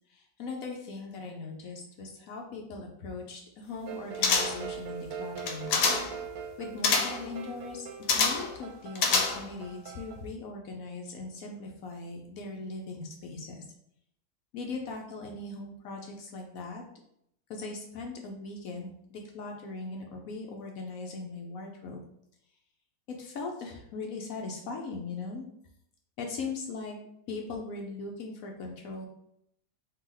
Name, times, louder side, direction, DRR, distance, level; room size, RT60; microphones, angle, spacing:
voice 1, 0.1-5.8 6.6-13.6 14.5-16.8 17.5-22.0 23.1-25.4 26.2-27.0 27.3-29.1, left 3 dB, 65° left, 1 dB, 1.0 m, -39 dB
sound 1, 3.9-10.2, right 6 dB, 70° right, 1.1 m, -41 dB
sound 2, 4.2-4.7 5.4-6.2 6.8-7.3 8.1-8.5 9.0-9.6 9.9-10.0, left 5 dB, 85° left, 1.2 m, -26 dB
4.4 x 2.8 x 3.8 m, 0.74 s
omnidirectional pair, 1.8 m